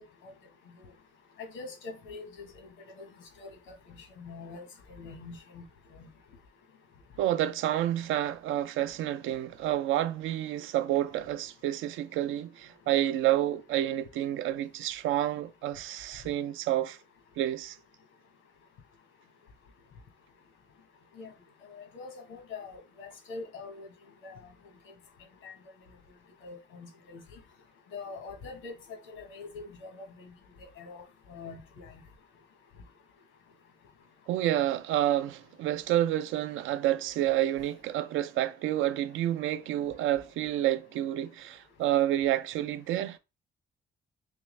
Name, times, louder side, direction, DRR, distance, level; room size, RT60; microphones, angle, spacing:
voice 1, 1.4-2.5 3.4-4.6 5.0-5.7 6.0-6.1 21.2-21.3 21.6-23.9 24.2-24.4 25.4-25.5 26.4-27.2 27.9-30.3 30.8-31.0 31.3-31.9, left 4 dB, 90° left, 1.2 m, -44 dB
voice 2, 7.2-17.0 17.4-17.8 34.3-43.2, right 12 dB, 85° right, 0.4 m, -29 dB
3.5 x 3.4 x 3.1 m
cardioid pair, 90°, 20 cm